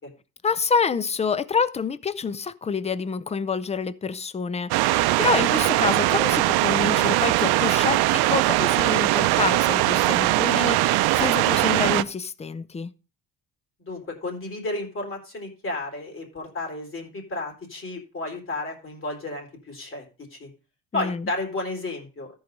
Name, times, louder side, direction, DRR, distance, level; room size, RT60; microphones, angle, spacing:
voice 1, 0.4-12.9 20.9-21.3, left 5 dB, 15° left, 0.6 m, -27 dB
sound 1, 4.7-12.0, right 17 dB, 80° right, 0.6 m, -21 dB
voice 2, 13.8-20.0 20.3-20.5 20.9-22.3, left 2 dB, 35° left, 3.8 m, -32 dB
14.0 x 4.8 x 5.3 m
cardioid pair, 115°, 37 cm